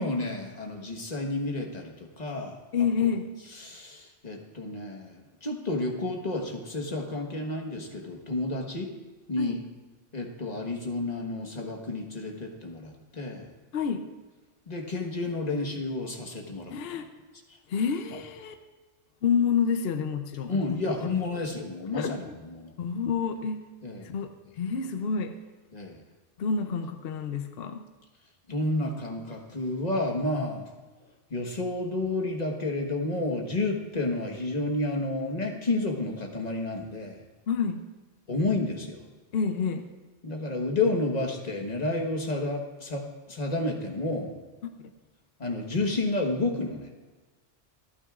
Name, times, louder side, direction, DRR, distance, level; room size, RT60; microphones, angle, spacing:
voice 1, 0.0-2.6 3.0-3.1 3.6-8.9 9.3-9.6 10.1-13.5 14.7-17.0 17.5-17.6 20.5-22.7 23.8-24.1 25.7-26.0 28.5-30.7 31.3-37.2 38.3-39.0 40.2-44.4 45.4-46.9, left 2 dB, 35° left, 2 dB, 1.4 m, -31 dB
voice 2, 2.7-3.3 9.4-9.6 13.7-14.1 16.7-17.1 17.7-18.6 19.2-21.1 21.9-22.2 22.8-23.7 24.0-25.4 26.4-27.8 37.5-37.8 39.3-39.9, left 6 dB, 60° left, 7 dB, 0.8 m, -28 dB
27.0 x 9.1 x 2.4 m, 1.3 s
omnidirectional pair, 1.2 m